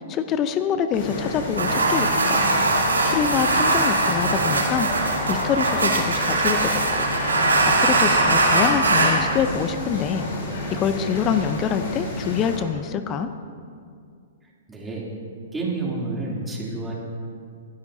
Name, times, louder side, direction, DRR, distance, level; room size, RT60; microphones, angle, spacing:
voice 1, 0.0-2.4 2.7-7.1 7.5-10.2 10.7-13.3, left 7 dB, 30° left, 10 dB, 0.7 m, -26 dB
sound 1, 0.9-12.6, left 1 dB, 55° left, 3.8 m, -31 dB
sound 2, 1.6-9.2, right 2 dB, 85° right, 2.4 m, -21 dB
voice 2, 14.7-15.1 15.5-16.9, right 3 dB, 10° right, -5 dB, 3.2 m, -29 dB
22.0 x 11.5 x 2.8 m, 2.3 s
figure-of-eight pair, 115°, 0 cm